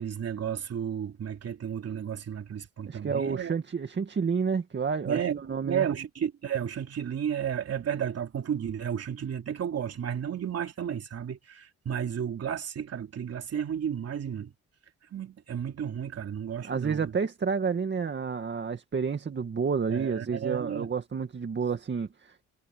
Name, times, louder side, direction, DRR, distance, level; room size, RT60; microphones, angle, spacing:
voice 1, 0.0-3.5 5.0-5.4 5.6-14.5 15.1-17.2 19.9-20.9, right 8 dB, 55° right, 3.2 m, -33 dB
voice 2, 2.8-5.9 16.6-22.4, right 5 dB, 40° right, 2.1 m, -30 dB
cardioid pair, 90°, 30 cm